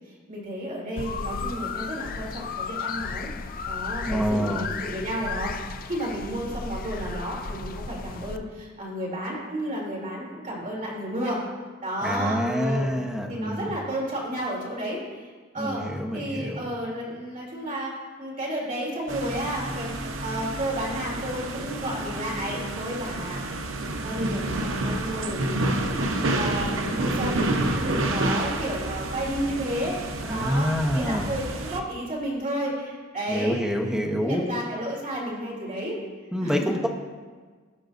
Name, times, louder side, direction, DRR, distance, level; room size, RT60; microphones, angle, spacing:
voice 1, 0.1-3.3 3.7-5.5 5.9-11.4 11.8-12.9 13.3-15.3 15.5-15.9 16.1-19.9 20.2-23.4 24.0-27.4 27.7-30.7 30.9-36.0 36.4-36.6, right 1 dB, 40° right, -4 dB, 3.0 m, -32 dB
sound 1, 1.0-8.4, left 5 dB, 45° left, 0.4 m, -34 dB
voice 2, 4.1-4.7 12.0-13.7 15.6-16.7 30.2-31.2 33.3-34.5 36.3-36.9, equal, 5° right, 1 dB, 0.9 m, -26 dB
sound 2, 19.1-31.8, right 2 dB, 70° right, 0.8 m, -29 dB
17.0 x 6.3 x 2.6 m, 1.5 s
head